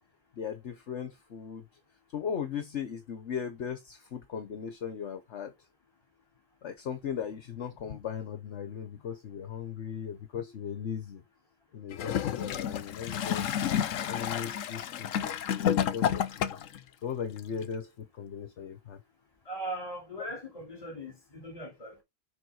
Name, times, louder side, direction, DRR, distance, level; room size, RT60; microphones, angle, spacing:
voice 1, 0.4-1.7 2.1-5.5 6.6-11.2 11.7-13.6 14.1-16.6 17.0-19.0, left 7 dB, 65° left, 1.3 m, -38 dB
Gurgling / Toilet flush, 11.9-16.8 17.6-17.7, left 9 dB, 85° left, 1.1 m, -30 dB
voice 2, 19.5-22.0, right 1 dB, 30° left, 3.0 m, -39 dB
6.5 x 5.5 x 4.7 m
omnidirectional pair, 1.3 m